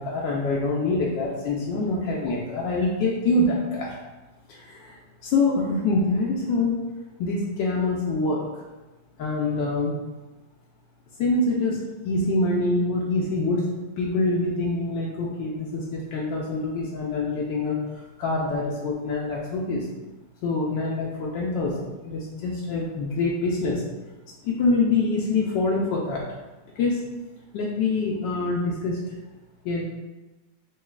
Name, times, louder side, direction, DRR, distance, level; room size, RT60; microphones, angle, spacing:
voice 1, 0.0-4.0 4.5-6.8 7.2-8.4 9.2-10.0 11.2-11.8 12.0-13.7 14.0-17.8 18.2-19.9 20.4-23.8 24.4-26.2 26.8-27.0 27.5-29.0 29.6-29.8, left 3 dB, 80° left, -4 dB, 1.3 m, -25 dB
6.0 x 2.4 x 2.3 m, 1.1 s
omnidirectional pair, 2.0 m